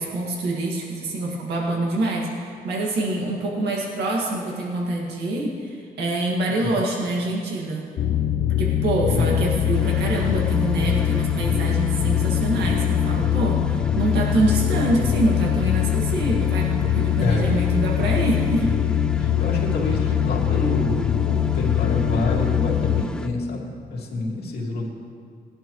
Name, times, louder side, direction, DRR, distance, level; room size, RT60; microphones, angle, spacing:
voice 1, 0.0-7.9 8.6-18.7, right 2 dB, 90° right, -2 dB, 2.0 m, -25 dB
voice 2, 6.5-6.8 9.1-9.4 17.2-17.4 19.2-24.9, left 2 dB, 75° left, -2 dB, 2.4 m, -27 dB
sound 1, 8.0-23.0, left 10 dB, 60° left, 0.5 m, -22 dB
sound 2, 9.7-23.3, left 1 dB, 5° left, 0.6 m, -36 dB
18.5 x 11.0 x 3.1 m, 2.2 s
cardioid pair, 100°, 17 cm